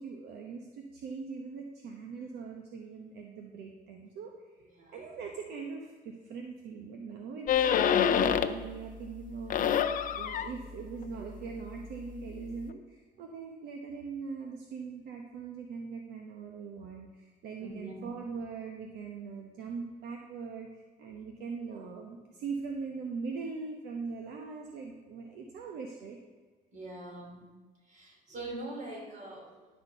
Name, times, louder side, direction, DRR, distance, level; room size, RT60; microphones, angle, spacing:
voice 1, 0.0-4.3 4.9-9.8 10.1-26.2, right 5 dB, 75° right, 1 dB, 1.1 m, -41 dB
sound 1, 7.5-8.7 9.1-12.7, left 8 dB, 55° left, 0.6 m, -29 dB
voice 2, 17.6-17.9 26.7-27.4 27.9-29.7, right 1 dB, 50° right, -1 dB, 3.1 m, -43 dB
11.5 x 4.4 x 6.7 m, 1.3 s
cardioid pair, 110°, 17 cm